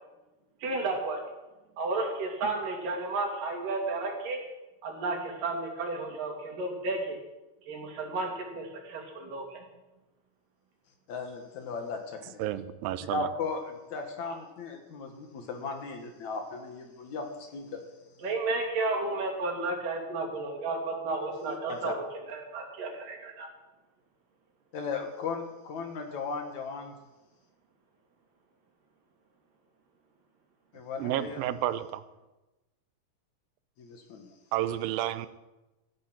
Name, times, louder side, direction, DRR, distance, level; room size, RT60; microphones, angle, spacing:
voice 1, 0.6-1.2 1.8-4.4 4.8-7.2 7.7-9.6 14.3-14.4 18.2-23.5, right 3 dB, 70° right, 1 dB, 4.3 m, -32 dB
voice 2, 11.1-12.0 12.3-12.4 13.1-17.8 21.7-21.9 24.7-26.9 30.7-31.4 33.8-34.3, left 4 dB, 60° left, 5 dB, 2.7 m, -36 dB
voice 3, 12.4-13.3 31.0-32.0 34.5-35.3, right 13 dB, 90° right, 13 dB, 2.5 m, -31 dB
15.0 x 10.0 x 7.7 m, 1.1 s
omnidirectional pair, 4.0 m